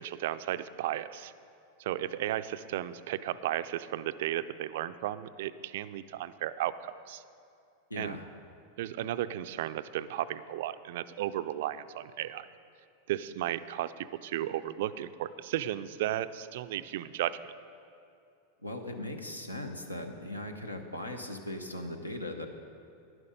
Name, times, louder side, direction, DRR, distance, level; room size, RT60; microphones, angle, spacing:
voice 1, 0.0-1.3 1.8-7.2 8.0-8.2 8.8-12.5 13.1-17.5, right 12 dB, 55° right, 13 dB, 0.4 m, -34 dB
voice 2, 7.9-8.3 18.6-22.5, left 1 dB, 85° left, 6 dB, 0.9 m, -39 dB
11.0 x 10.5 x 5.2 m, 2.6 s
figure-of-eight pair, 90°, 0 cm